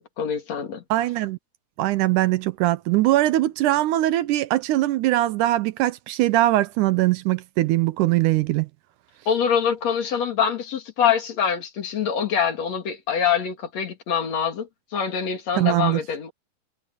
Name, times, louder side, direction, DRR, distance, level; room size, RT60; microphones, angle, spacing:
voice 1, 0.0-0.8 9.3-16.3, left 7 dB, 55° left, 3.3 m, -25 dB
voice 2, 0.9-1.4 1.8-8.7 15.6-16.0, right 16 dB, 80° right, 2.0 m, -21 dB
omnidirectional pair, 3.8 m